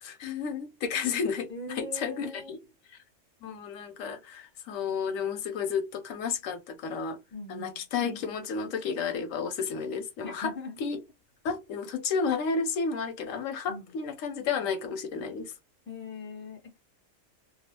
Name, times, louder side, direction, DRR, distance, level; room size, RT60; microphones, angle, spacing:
voice 1, 0.0-1.5 1.8-2.6 3.4-7.2 7.5-10.5 10.8-11.0 11.4-15.5, left 5 dB, 85° left, 1.0 m, -32 dB
voice 2, 1.5-2.6 7.3-7.8 10.2-10.8 13.7-14.0 15.9-16.9, left 2 dB, 10° left, 0.7 m, -41 dB
2.4 x 2.3 x 2.8 m
omnidirectional pair, 1.3 m